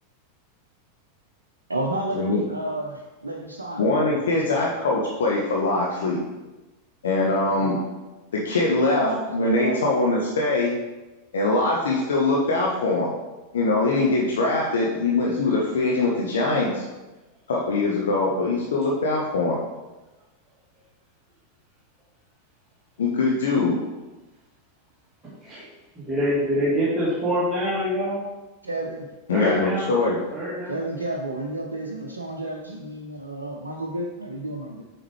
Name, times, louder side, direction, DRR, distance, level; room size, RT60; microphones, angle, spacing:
voice 1, 1.7-4.0 4.3-4.7 7.4-7.7 8.9-10.0 28.6-29.0 30.7-34.8, right 1 dB, 75° right, -1 dB, 0.6 m, -31 dB
voice 2, 3.8-6.2 7.0-7.8 8.3-10.7 11.3-13.1 13.5-16.8 17.5-19.6 23.0-23.8 29.3-30.2, left 2 dB, 65° left, -2 dB, 0.9 m, -22 dB
voice 3, 26.0-28.2 29.3-29.9 30.3-30.8, equal, 15° right, -10 dB, 1.8 m, -25 dB
7.2 x 4.9 x 3.3 m, 1.1 s
figure-of-eight pair, 90°, 0 cm